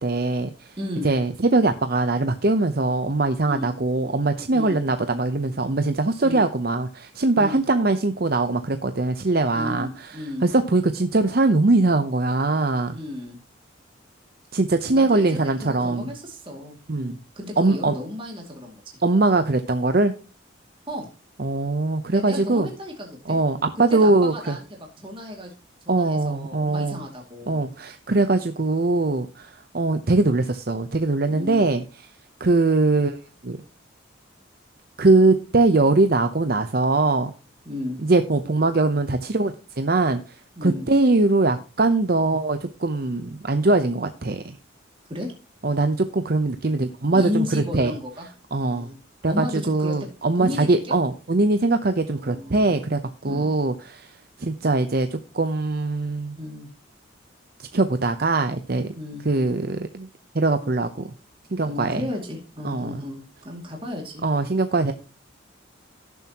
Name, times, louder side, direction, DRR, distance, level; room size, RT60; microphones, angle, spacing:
voice 1, 0.0-0.7 1.0-9.9 10.4-13.0 14.5-16.1 16.9-17.2 17.6-17.9 19.0-20.1 21.4-22.7 23.3-24.6 25.9-27.0 27.5-31.8 32.4-33.2 33.4-33.6 35.0-37.3 38.0-40.2 40.6-44.6 45.6-47.9 48.5-48.9 49.2-54.1 54.4-55.1 55.3-56.4 57.6-58.9 59.3-60.1 60.3-60.9 61.5-62.0 62.6-63.0 64.2-64.9, right 2 dB, 50° right, 9 dB, 0.7 m, -21 dB
voice 2, 0.8-1.1 3.5-3.7 4.5-4.8 6.2-6.4 7.4-7.6 9.5-10.5 12.9-13.4 14.9-18.8 20.9-21.1 22.1-23.4 23.9-25.5 25.8-27.6 31.3-31.6 37.7-38.0 40.6-40.9 45.1-45.3 47.1-48.3 48.7-49.0 49.3-50.0 50.4-51.0 52.1-52.8 53.2-53.5 56.4-56.7 58.9-59.2 61.6-64.2, left 1 dB, 25° right, 0 dB, 2.4 m, -33 dB
17.5 x 7.2 x 2.9 m, 0.32 s
head